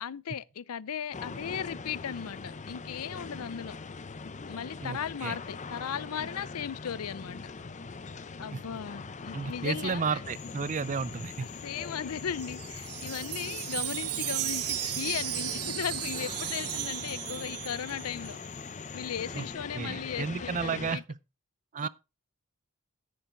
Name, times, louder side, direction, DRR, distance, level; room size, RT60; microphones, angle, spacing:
voice 1, 0.0-3.8 4.2-7.5 8.4-10.2 11.6-18.4 18.9-21.0 21.8-21.9, left 8 dB, 75° left, 0.5 m, -37 dB
sound 1, 1.1-21.0, left 4 dB, 35° left, 0.7 m, -42 dB
voice 2, 4.8-5.4 8.5-8.6 9.3-11.5 19.3-19.5 19.7-21.2 21.7-21.9, right 5 dB, 35° right, 0.5 m, -33 dB
Cricket / Frog, 10.2-19.6, left 11 dB, 50° left, 1.4 m, -49 dB
Wind chime, 12.2-18.4, right 15 dB, 80° right, 0.7 m, -35 dB
10.5 x 8.5 x 3.8 m
head